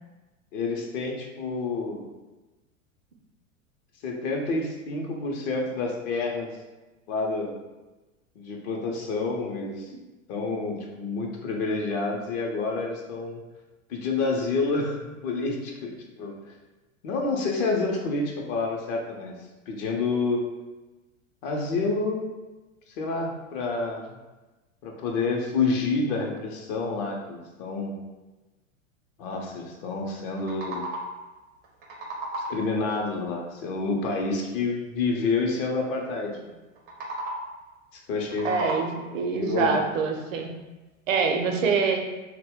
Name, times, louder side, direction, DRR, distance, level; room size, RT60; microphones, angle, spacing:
voice 1, 0.5-2.0 4.0-6.5 7.1-7.5 8.4-9.9 10.3-13.4 13.9-15.0 15.2-16.3 17.0-19.4 19.7-20.4 21.4-22.2 23.0-24.2 24.8-28.0 29.2-30.8 32.4-36.4 37.9-38.5 39.3-39.8, left 3 dB, 45° left, 0 dB, 0.6 m, -28 dB
sound 1, 30.2-31.3 31.6-32.8 36.8-37.6 38.1-39.2, right 1 dB, 25° right, 0.4 m, -35 dB
voice 2, 38.4-40.5 41.1-42.0, right 5 dB, 70° right, 3 dB, 0.6 m, -25 dB
2.2 x 2.1 x 3.5 m, 1.1 s
hypercardioid pair, 95°, 40 cm